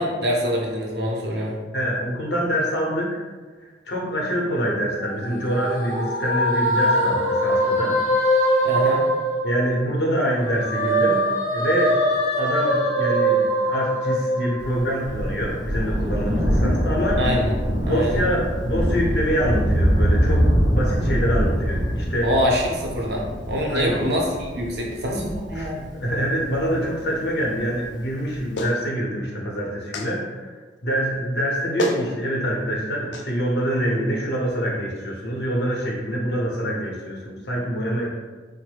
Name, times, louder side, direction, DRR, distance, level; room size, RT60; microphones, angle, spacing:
voice 1, 0.0-1.5 8.6-9.1 17.2-17.6 17.8-18.2 22.2-25.8, equal, 65° right, -1 dB, 0.6 m, -24 dB
voice 2, 1.7-3.2 3.6-8.0 9.4-12.0 12.4-17.2 17.9-22.3 23.7-24.0 25.5-25.7 25.9-30.5 30.8-38.1, equal, 70° left, -2 dB, 0.7 m, -25 dB
sound 1, 5.0-10.0 10.4-15.1, equal, 40° left, 0.7 m, -22 dB
Thunder, 14.6-27.5 28.4-28.5, equal, 25° right, 0.6 m, -24 dB
Clapping, 28.6-28.8 29.9-30.1 31.4-31.5 31.8-32.0 33.1-33.3, left 1 dB, 90° left, 0.4 m, -26 dB
3.1 x 2.0 x 3.3 m, 1.3 s
head